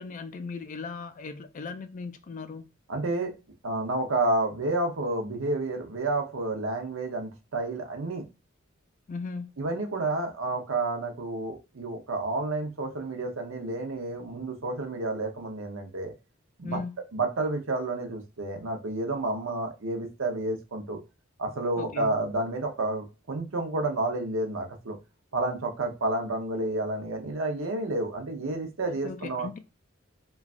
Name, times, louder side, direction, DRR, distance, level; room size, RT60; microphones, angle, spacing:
voice 1, 0.0-2.7 9.1-9.5 16.6-17.0 21.8-22.2 29.0-29.6, left 4 dB, 40° left, 0.3 m, -37 dB
voice 2, 2.9-3.3 3.6-8.2 9.6-16.1 16.6-16.8 17.1-21.0 21.4-25.0 25.3-29.5, right 2 dB, 80° right, 0.7 m, -30 dB
3.1 x 2.3 x 2.4 m
head